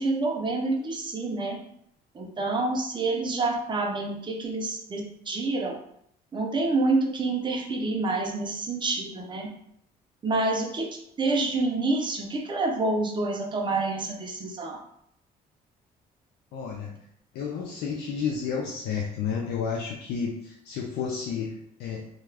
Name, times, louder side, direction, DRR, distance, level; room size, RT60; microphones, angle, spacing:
voice 1, 0.0-1.6 2.1-5.7 6.3-9.5 10.2-10.9 11.2-14.8, right 3 dB, 30° right, 1 dB, 0.6 m, -27 dB
voice 2, 16.5-17.0 17.3-22.1, left 6 dB, 80° left, -1 dB, 0.5 m, -31 dB
2.3 x 2.3 x 3.2 m, 0.71 s
cardioid pair, 110°, 17 cm